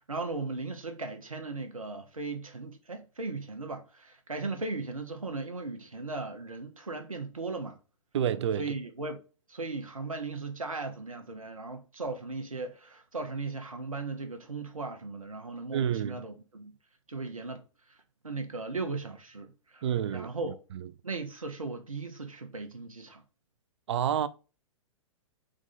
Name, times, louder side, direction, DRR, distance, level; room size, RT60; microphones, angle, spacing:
voice 1, 0.0-7.8 8.6-9.2 9.5-16.7 17.1-17.6 18.2-19.8 20.1-20.6 21.0-23.2, right 3 dB, 90° right, 0.8 m, -37 dB
voice 2, 8.1-8.6 15.7-16.2 19.8-20.9 23.9-24.3, right 9 dB, 55° right, 0.5 m, -29 dB
3.8 x 3.6 x 3.9 m
figure-of-eight pair, 110°, 17 cm